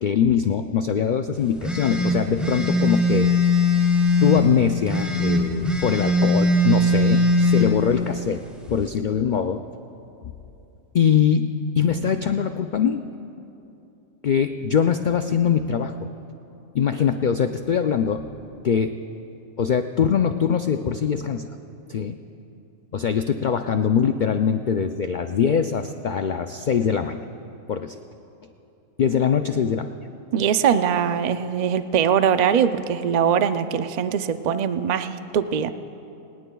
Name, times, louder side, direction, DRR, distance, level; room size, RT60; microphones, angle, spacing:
voice 1, 0.0-3.3 4.2-8.4 8.7-9.6 10.9-11.5 11.8-13.1 14.2-15.9 16.7-18.2 18.6-19.0 19.6-21.5 21.9-22.2 22.9-27.2 27.7-28.0 29.0-29.9, left 7 dB, 80° left, 7 dB, 0.4 m, -22 dB
sound 1, 1.6-4.4 4.9-7.7, left 1 dB, ahead, 2.5 m, -20 dB
voice 2, 30.3-35.7, right 8 dB, 65° right, 10 dB, 0.4 m, -22 dB
25.0 x 19.0 x 2.3 m, 2.8 s
omnidirectional pair, 1.4 m